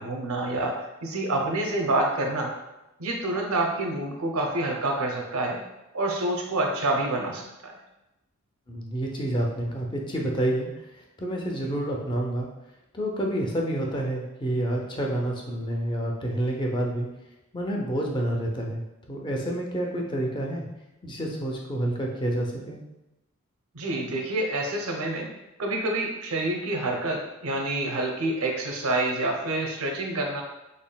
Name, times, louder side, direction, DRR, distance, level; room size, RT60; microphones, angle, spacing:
voice 1, 0.0-2.5 3.0-5.6 5.9-7.8 23.7-25.3 25.6-30.4, right 2 dB, 75° right, 1 dB, 0.7 m, -27 dB
voice 2, 8.7-12.5 12.9-17.1 17.5-20.6 21.0-22.8, right 1 dB, 20° left, -1 dB, 0.5 m, -29 dB
4.0 x 3.5 x 2.2 m, 0.94 s
head